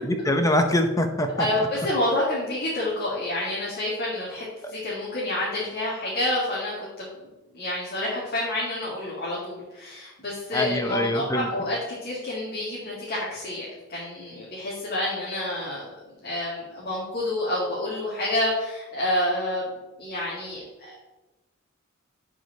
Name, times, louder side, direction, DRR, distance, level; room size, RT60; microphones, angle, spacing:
voice 1, 0.3-1.3 4.6-4.7 10.5-11.5, left 1 dB, 15° left, 6 dB, 0.7 m, -23 dB
voice 2, 1.4-7.1 7.5-15.9 16.2-19.7 20.0-21.0, left 1 dB, 50° left, -7 dB, 2.2 m, -28 dB
11.0 x 4.9 x 4.0 m, 1.1 s
head